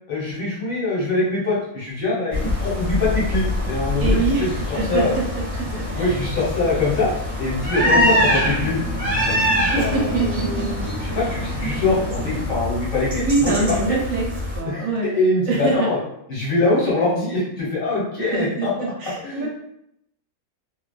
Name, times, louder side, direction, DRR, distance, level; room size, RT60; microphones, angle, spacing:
voice 1, 0.1-4.5 4.9-5.1 5.7-7.1 7.4-8.8 9.2-14.0 14.6-16.0 16.3-18.7 19.2-19.5, left 2 dB, 65° left, -6 dB, 1.3 m, -23 dB
sound 1, 2.3-14.6, left 1 dB, 20° right, 1.4 m, -24 dB
voice 2, 4.0-4.5 4.7-5.1 5.9-6.2 7.9-8.3 9.7-10.9 11.1-11.3 13.2-14.2 14.5-15.2 15.5-15.7 18.3-19.5, right 4 dB, 70° right, -2 dB, 0.9 m, -24 dB
2.5 x 2.2 x 2.3 m, 0.76 s
omnidirectional pair, 1.6 m